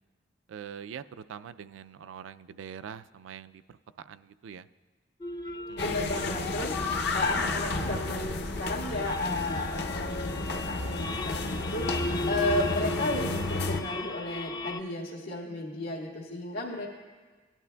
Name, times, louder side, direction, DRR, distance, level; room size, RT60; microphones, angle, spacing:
voice 1, 0.5-4.7 5.7-5.9, right 8 dB, 85° right, 13 dB, 0.3 m, -44 dB
sound 1, 5.2-14.8, left 2 dB, 20° left, 0.4 m, -37 dB
voice 2, 5.8-16.9, left 2 dB, 85° left, -6 dB, 1.6 m, -33 dB
sound 2, 5.8-13.8, left 3 dB, 60° left, 0.7 m, -32 dB
18.0 x 11.0 x 2.2 m, 1.4 s
head